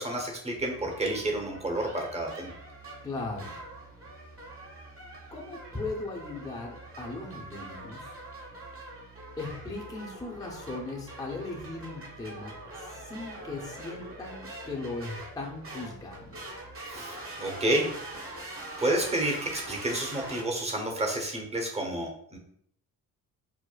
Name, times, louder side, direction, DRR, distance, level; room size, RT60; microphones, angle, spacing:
voice 1, 0.0-2.5 16.9-17.9 18.8-22.4, right 1 dB, 15° right, 1 dB, 0.9 m, -30 dB
sound 1, 0.6-20.4, right 2 dB, 35° right, 1.1 m, -43 dB
voice 2, 3.0-3.6 5.3-8.1 9.4-16.4, left 3 dB, 10° left, -2 dB, 0.7 m, -38 dB
4.7 x 2.0 x 2.3 m, 0.68 s
supercardioid pair, 70°, 38 cm